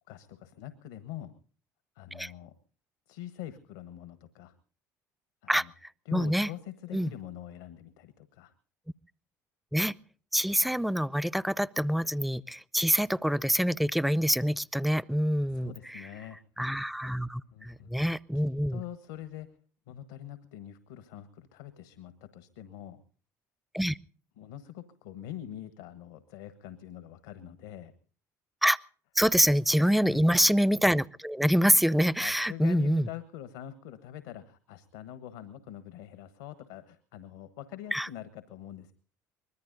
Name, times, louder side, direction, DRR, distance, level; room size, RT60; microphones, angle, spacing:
voice 1, 0.1-1.4 1.9-2.5 3.1-4.5 5.4-5.7 6.0-8.5 15.5-16.4 17.3-18.0 18.3-19.5 19.9-23.0 24.4-27.9 29.8-30.3 32.2-38.9, left 12 dB, 75° left, 13 dB, 1.2 m, -44 dB
voice 2, 6.1-6.5 6.9-7.1 9.7-9.9 10.3-15.7 16.6-18.8 23.7-24.0 28.6-28.8 29.2-33.1 37.9-38.1, equal, ahead, 22 dB, 0.6 m, -26 dB
24.5 x 21.0 x 2.6 m, 0.44 s
hypercardioid pair, 60°, 9 cm